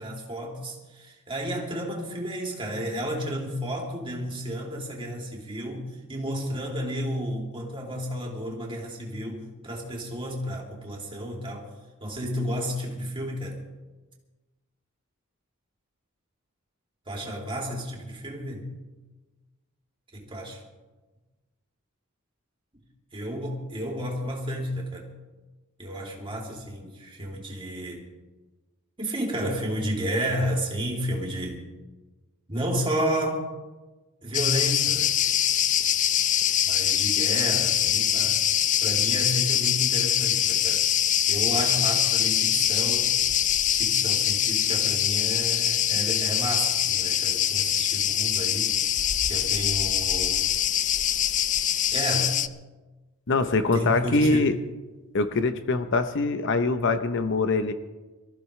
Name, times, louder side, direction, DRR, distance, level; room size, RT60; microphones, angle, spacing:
voice 1, 0.0-11.7 12.0-13.6 17.1-18.7 20.1-20.6 23.1-25.1 25.8-28.1 29.0-31.6 32.5-33.4 34.2-35.1 36.6-38.4 38.8-40.8 41.3-43.1 43.7-48.8 49.2-50.5 51.9-52.4 53.7-54.5, equal, 25° right, 3.0 m, -32 dB
Cricket, 34.3-52.5, left 10 dB, 35° left, 0.5 m, -24 dB
voice 2, 53.3-54.5 55.1-57.7, left 3 dB, 60° left, 0.9 m, -23 dB
24.5 x 14.5 x 3.3 m
head